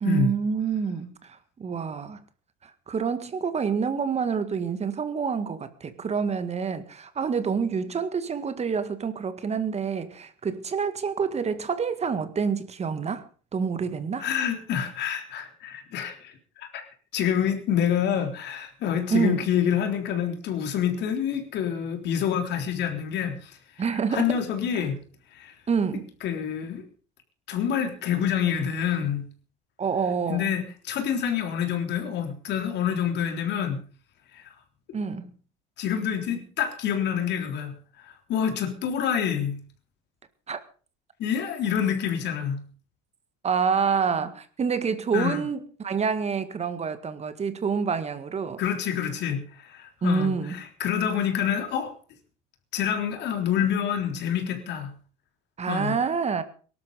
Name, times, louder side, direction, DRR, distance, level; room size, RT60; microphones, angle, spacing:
voice 1, 0.0-2.2 2.6-13.3 13.5-14.3 19.1-19.5 23.8-24.4 24.8-24.9 25.7-26.1 29.8-30.5 34.9-35.3 40.5-40.6 43.4-48.6 50.0-50.6 55.6-56.4, right 6 dB, 35° right, 1.9 m, -27 dB
voice 2, 14.2-23.6 24.1-25.0 25.3-25.5 26.2-26.8 27.5-29.3 30.3-33.8 34.3-34.5 35.8-37.7 38.0-39.6 41.2-42.6 45.1-45.4 48.6-51.9 52.7-54.9 55.7-55.9, left 8 dB, 60° left, 3.7 m, -27 dB
18.0 x 12.5 x 5.2 m
supercardioid pair, 85°, 20 cm